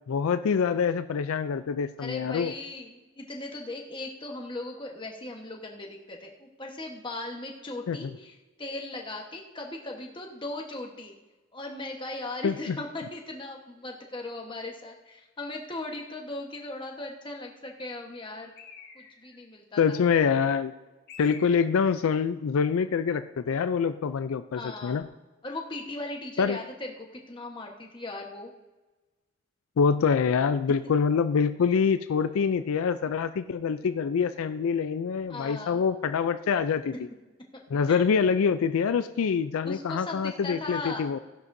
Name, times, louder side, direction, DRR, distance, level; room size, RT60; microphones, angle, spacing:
voice 1, 0.1-2.5 7.9-8.1 12.4-12.8 19.8-20.7 21.2-25.0 26.4-26.6 29.8-36.9 37.7-41.2, left 6 dB, 80° left, 11 dB, 0.4 m, -25 dB
voice 2, 2.0-11.1 11.5-18.5 18.9-20.0 24.5-25.0 25.4-28.5 35.3-35.8 37.9-38.0 39.6-41.1, left 2 dB, 20° left, 1 dB, 1.2 m, -38 dB
Bird, 18.6-19.4 21.1-22.0, left 5 dB, 50° left, 1.5 m, -47 dB
15.5 x 11.0 x 2.7 m, 1.2 s
head